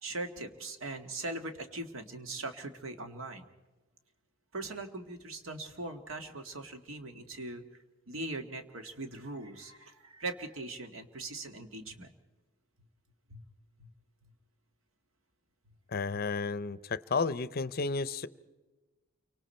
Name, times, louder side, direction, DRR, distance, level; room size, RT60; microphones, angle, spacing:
voice 1, 0.0-3.4 4.5-7.6 8.1-12.2 13.3-13.4 13.8-13.9 14.2-14.3 16.1-16.2, right 2 dB, 85° right, 6 dB, 1.8 m, -40 dB
voice 2, 15.9-18.3, left 4 dB, 50° left, 17 dB, 0.6 m, -32 dB
29.0 x 24.5 x 4.4 m, 1.2 s
head